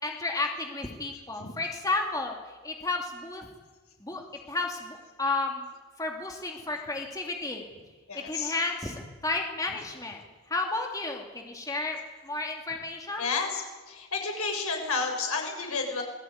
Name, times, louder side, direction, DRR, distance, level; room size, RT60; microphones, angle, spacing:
voice 1, 0.0-3.5 4.0-4.2 4.5-5.7 6.0-7.6 8.1-10.2 10.5-12.0 12.2-13.3, left 3 dB, 15° left, 2 dB, 2.6 m, -32 dB
voice 2, 8.1-8.5 13.2-13.6 13.9-16.0, left 4 dB, 90° left, 2 dB, 6.8 m, -31 dB
27.5 x 20.5 x 9.5 m, 1.3 s
head